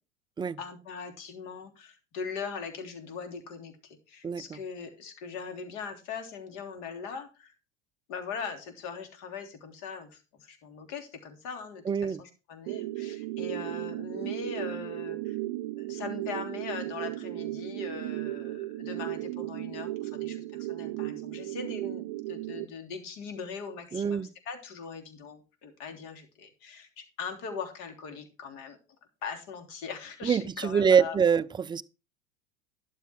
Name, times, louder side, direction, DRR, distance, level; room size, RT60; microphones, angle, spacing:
voice 1, 0.6-7.5 8.1-15.4 15.7-28.8 29.2-31.2, left 5 dB, 55° left, 3.4 m, -40 dB
voice 2, 4.2-4.6 11.9-12.2 23.9-24.3 30.2-31.8, right 7 dB, 10° right, 0.5 m, -25 dB
sound 1, 12.7-22.7, right 17 dB, 60° right, 0.7 m, -35 dB
12.0 x 7.2 x 4.8 m
hypercardioid pair, 85°, 37 cm